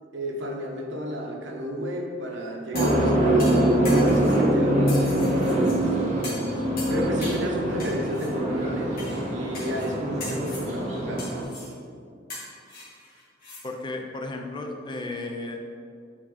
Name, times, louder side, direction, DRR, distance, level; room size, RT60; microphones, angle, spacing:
voice 1, 0.1-5.3 5.8-5.9 6.9-11.3, equal, 75° right, 0 dB, 1.0 m, -32 dB
sound 1, 2.7-3.0 3.4-4.4 4.9-5.8 6.2-6.5 6.8-7.4 7.8-8.3 9.0-9.1 9.5-9.9 10.2-10.7 11.2-11.7 12.3-13.6 14.0-14.1, left 2 dB, 50° left, 1.6 m, -39 dB
sound 2, 2.7-11.4, right 1 dB, 40° right, 1.7 m, -24 dB
voice 2, 13.6-15.6, left 2 dB, 25° left, 3 dB, 0.5 m, -34 dB
8.7 x 3.7 x 3.9 m, 2.3 s
head